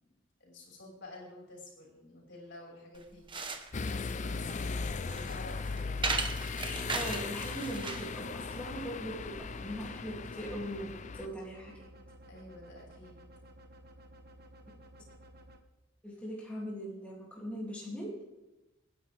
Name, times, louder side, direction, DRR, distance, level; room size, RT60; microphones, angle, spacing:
voice 1, 0.4-3.3 3.9-6.1 12.3-13.2, left 2 dB, 60° left, -1 dB, 5.2 m, -50 dB
sound 1, 2.9-8.1, right 4 dB, 25° right, 1.2 m, -37 dB
sound 2, 3.7-11.3, left 4 dB, 35° left, 0.5 m, -38 dB
voice 2, 6.9-11.9 16.0-18.2, equal, 5° left, -5 dB, 2.8 m, -40 dB
sound 3, 11.2-15.6, right 1 dB, 50° right, 1.4 m, -54 dB
25.5 x 10.0 x 3.5 m, 0.99 s
head